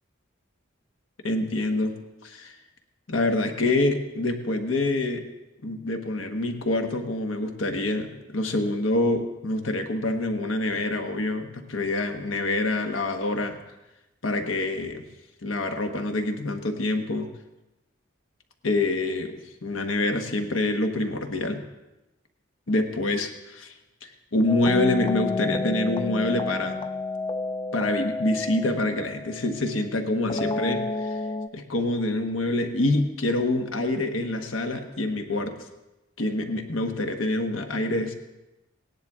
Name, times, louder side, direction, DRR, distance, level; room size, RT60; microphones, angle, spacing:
voice 1, 1.2-1.9 2.2-2.6 3.1-5.2 5.6-13.6 14.2-15.0 15.4-17.3 18.6-19.3 19.6-21.6 22.7-23.7 24.0-26.9 27.7-31.2 31.5-35.6 36.2-38.1, left 2 dB, 75° left, 5 dB, 1.2 m, -26 dB
sound 1, 24.5-29.6 30.3-31.5, left 3 dB, 25° left, 0.3 m, -30 dB
17.5 x 10.5 x 3.6 m, 1.0 s
head